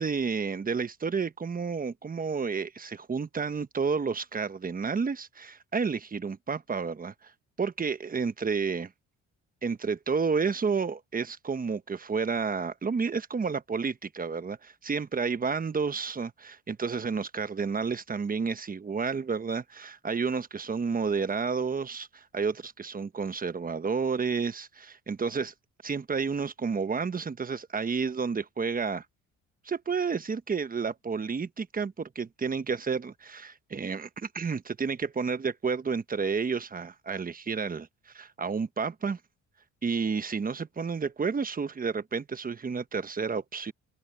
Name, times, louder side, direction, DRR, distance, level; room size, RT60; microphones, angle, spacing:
voice 1, 0.0-7.3 7.6-8.9 9.6-25.5 25.8-29.0 29.6-39.2 39.8-43.7, right 5 dB, 30° right, 1.1 m, -31 dB
open air
cardioid pair, 90°, 30 cm